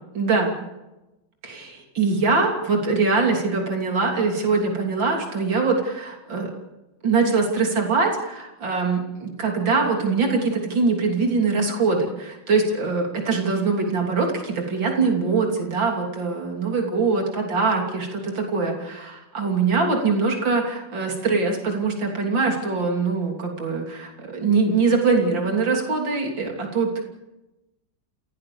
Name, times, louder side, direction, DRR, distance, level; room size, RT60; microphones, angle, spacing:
voice 1, 0.1-0.5 1.4-6.5 7.0-27.0, right 4 dB, 80° right, 2 dB, 3.9 m, -23 dB
27.5 x 17.0 x 7.0 m, 1.0 s
omnidirectional pair, 2.0 m